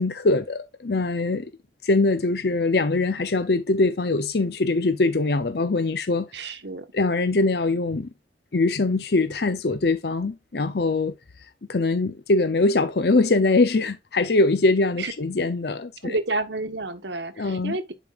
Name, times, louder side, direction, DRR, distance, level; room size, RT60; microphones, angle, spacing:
voice 1, 0.0-1.5 1.8-6.3 6.9-8.1 8.5-16.2 17.4-17.8, left 3 dB, 60° left, 0.7 m, -22 dB
voice 2, 6.3-6.9 15.0-15.1 16.0-17.9, right 2 dB, 75° right, 1.3 m, -30 dB
10.5 x 5.2 x 2.5 m
head